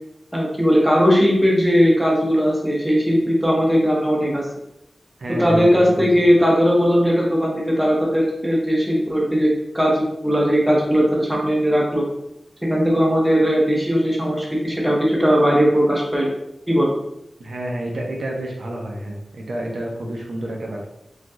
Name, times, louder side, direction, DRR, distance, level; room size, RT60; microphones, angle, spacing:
voice 1, 0.3-4.4 5.4-12.0 12.6-16.3 16.7-16.9, equal, 5° right, -3 dB, 0.6 m, -18 dB
voice 2, 5.2-6.1 17.4-20.8, right 1 dB, 80° right, -1 dB, 0.5 m, -29 dB
3.2 x 2.3 x 2.5 m, 0.84 s
wide cardioid pair, 110°, 0 cm